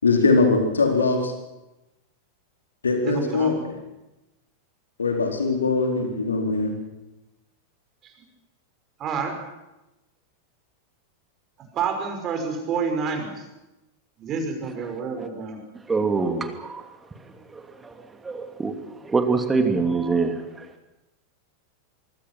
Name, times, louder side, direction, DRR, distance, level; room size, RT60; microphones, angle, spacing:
voice 1, 0.0-1.3 2.8-3.6 5.0-6.8, left 3 dB, 75° left, 3 dB, 4.3 m, -21 dB
voice 2, 3.0-3.6 8.0-8.1 9.0-9.4 11.7-13.4 14.2-15.6, right 5 dB, 30° right, 4 dB, 5.8 m, -28 dB
voice 3, 15.9-16.8 17.8-17.9 18.2-18.8 19.0-20.4, right 4 dB, 15° right, 6 dB, 2.8 m, -23 dB
24.5 x 24.0 x 6.1 m, 0.98 s
figure-of-eight pair, 90°, 0 cm